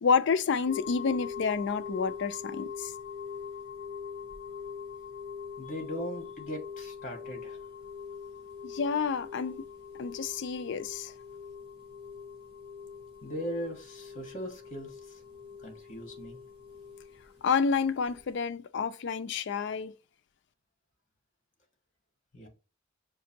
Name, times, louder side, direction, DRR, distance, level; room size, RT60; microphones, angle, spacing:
voice 1, 0.0-2.9 8.6-9.6 10.0-11.1 17.4-19.9, left 5 dB, 60° left, 0.4 m, -29 dB
sound 1, 0.6-18.4, left 6 dB, 25° right, 1.4 m, -43 dB
voice 2, 5.6-7.6 13.2-15.2 15.6-16.4 22.3-22.5, equal, 40° left, 1.5 m, -39 dB
6.1 x 2.6 x 2.8 m
head